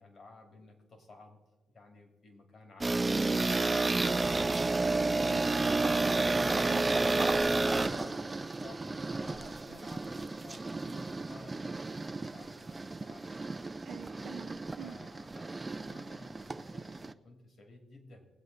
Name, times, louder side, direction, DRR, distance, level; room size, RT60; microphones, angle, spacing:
voice 1, 0.0-1.4 1.7-5.9 7.0-11.8 12.1-13.4 14.8-18.3, left 2 dB, 45° left, 4 dB, 2.5 m, -54 dB
sound 1, 2.8-17.1, right 3 dB, 20° right, 0.5 m, -31 dB
voice 2, 4.8-5.4 6.6-7.3 13.8-14.9, right 10 dB, 75° right, -1 dB, 0.8 m, -47 dB
20.0 x 8.1 x 4.0 m, 1.1 s
cardioid pair, 90°, 0 cm